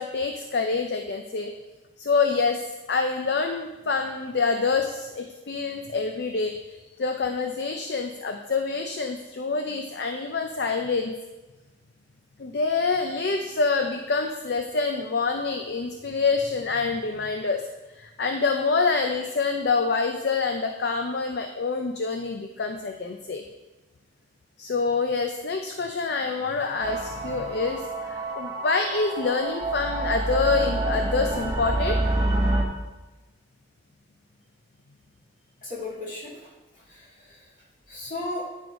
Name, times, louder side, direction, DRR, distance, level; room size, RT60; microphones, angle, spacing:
voice 1, 0.0-1.5 2.0-2.6 2.9-11.1 12.4-17.6 17.9-23.4 24.6-32.1, left 4 dB, 55° left, 5 dB, 0.5 m, -26 dB
sound 1, 26.8-32.6, right 2 dB, 20° right, 0.9 m, -27 dB
voice 2, 35.6-38.5, left 2 dB, 40° left, -6 dB, 2.7 m, -37 dB
9.6 x 4.7 x 5.1 m, 1.1 s
head